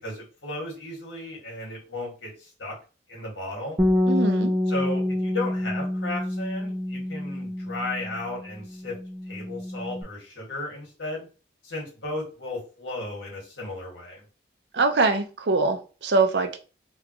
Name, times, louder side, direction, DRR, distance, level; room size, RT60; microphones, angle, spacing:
voice 1, 0.0-2.8 3.1-3.8 4.7-9.0 9.3-11.3 11.6-14.2, left 2 dB, 75° left, -2 dB, 1.7 m, -35 dB
Bass guitar, 3.8-10.0, left 1 dB, 10° right, 0.4 m, -27 dB
voice 2, 4.1-4.5 14.7-16.6, right 3 dB, 65° right, 7 dB, 0.6 m, -23 dB
3.6 x 2.3 x 3.0 m, 0.34 s
head